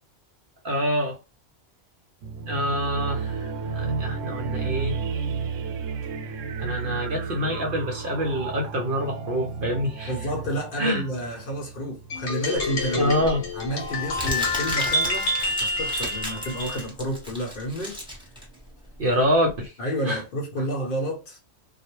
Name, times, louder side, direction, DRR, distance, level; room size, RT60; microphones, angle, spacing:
voice 1, 0.6-1.2 2.5-5.0 6.6-10.1 10.8-11.0 12.9-13.4 19.0-19.7 20.0-20.2, equal, 55° right, 0.7 m, -26 dB
sound 1, 2.2-12.4, right 5 dB, 90° right, 0.9 m, -32 dB
voice 2, 10.1-13.1 13.5-15.3 15.6-18.0 19.8-21.4, equal, 55° left, 0.8 m, -30 dB
sound 2, 12.1-16.9, left 2 dB, 70° left, 1.1 m, -28 dB
Crumpling crinkling, 12.6-19.6, equal, 5° right, 0.7 m, -35 dB
2.3 x 2.1 x 2.9 m
omnidirectional pair, 1.3 m